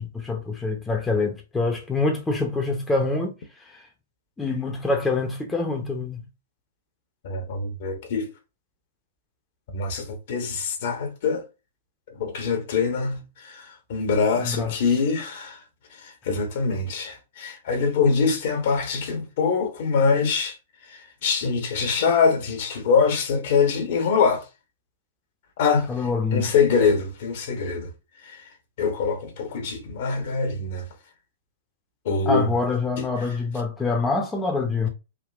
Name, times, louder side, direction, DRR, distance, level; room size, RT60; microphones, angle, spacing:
voice 1, 0.0-3.3 3.6-3.8 4.4-6.2 14.4-14.7 25.9-26.5 32.3-34.9, left 3 dB, 10° left, 0.7 m, -25 dB
voice 2, 7.2-8.3 9.7-11.4 12.1-15.6 15.9-20.6 20.9-24.5 25.6-25.9 26.3-27.9 28.2-28.5 28.8-30.9 32.0-32.5 33.0-33.1, left 5 dB, 55° left, 0.9 m, -24 dB
3.5 x 2.5 x 2.4 m
figure-of-eight pair, 105°, 0 cm